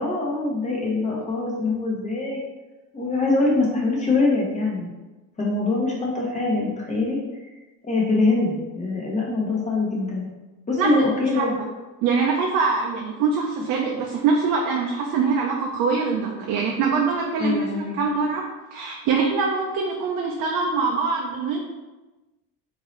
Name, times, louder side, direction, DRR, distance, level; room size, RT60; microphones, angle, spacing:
voice 1, 0.0-2.4 2.9-4.9 5.4-7.2 7.8-10.3 10.7-11.5 17.4-18.0, left 3 dB, 20° left, -4 dB, 1.0 m, -23 dB
voice 2, 12.0-18.4 18.7-21.6, right 5 dB, 60° right, 0 dB, 0.6 m, -23 dB
3.7 x 2.8 x 3.1 m, 1.1 s
cardioid pair, 130°, 39 cm